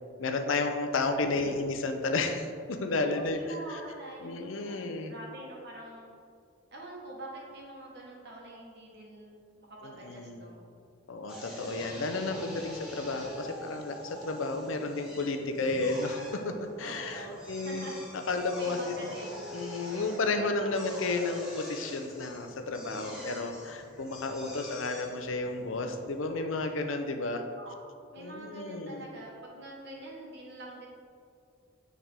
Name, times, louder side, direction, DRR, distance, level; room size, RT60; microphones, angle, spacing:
voice 1, 0.2-3.8 4.2-5.1 9.8-10.4 11.1-17.9 18.3-19.0 19.5-27.4 28.2-29.0, left 3 dB, 80° left, 6 dB, 0.6 m, -32 dB
voice 2, 1.2-1.5 3.0-4.8 5.1-6.1 6.7-10.6 11.7-12.4 16.8-17.9 18.6-21.2 22.8-23.5 26.2-26.5 27.6-27.7 28.1-30.9, right 1 dB, 55° right, -3 dB, 1.3 m, -45 dB
Drill, 11.3-26.6, equal, 5° right, 1.5 m, -45 dB
9.4 x 3.6 x 3.5 m, 2.3 s
head